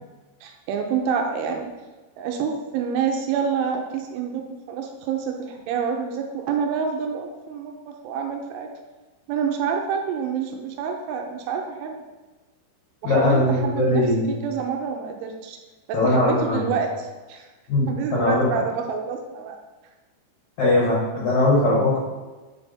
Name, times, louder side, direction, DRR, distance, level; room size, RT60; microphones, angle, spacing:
voice 1, 0.4-1.7 2.2-4.4 4.7-8.7 9.3-11.9 13.0-15.6 15.9-16.9 17.3-17.5 17.9-19.6, right 6 dB, 85° right, 3 dB, 3.0 m, -27 dB
voice 2, 13.0-14.3 15.9-16.7 17.7-18.5 20.6-22.0, left 2 dB, 75° left, -7 dB, 1.7 m, -20 dB
9.6 x 3.4 x 4.2 m, 1.2 s
omnidirectional pair, 5.8 m